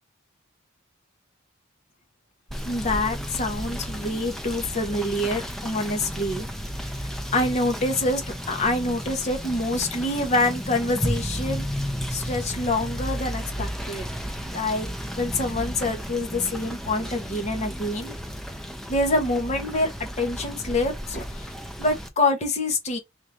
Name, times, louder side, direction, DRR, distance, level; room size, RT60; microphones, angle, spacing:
Rain / Motor vehicle (road), 2.5-22.1, equal, ahead, 0.5 m, -33 dB
voice 1, 2.7-6.5 7.3-8.2 8.5-11.6 12.1-14.1 14.4-14.9 15.2-18.1 18.9-19.9 20.2-21.5 21.8-23.0, left 2 dB, 35° left, 1.0 m, -26 dB
3.7 x 2.6 x 3.1 m
head